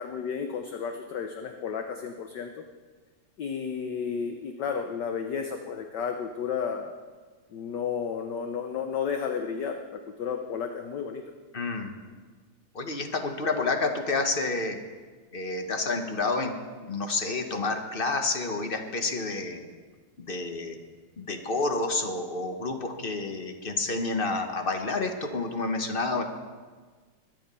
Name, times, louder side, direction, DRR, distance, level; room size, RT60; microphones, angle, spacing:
voice 1, 0.0-2.5 3.4-6.9 7.5-11.2, left 6 dB, 60° left, 5 dB, 1.4 m, -32 dB
voice 2, 11.5-11.9 12.7-14.8 15.3-16.5 16.8-19.6 20.2-20.8 21.2-26.2, left 3 dB, 30° left, 5 dB, 1.1 m, -29 dB
22.0 x 10.5 x 5.5 m, 1.5 s
omnidirectional pair, 2.4 m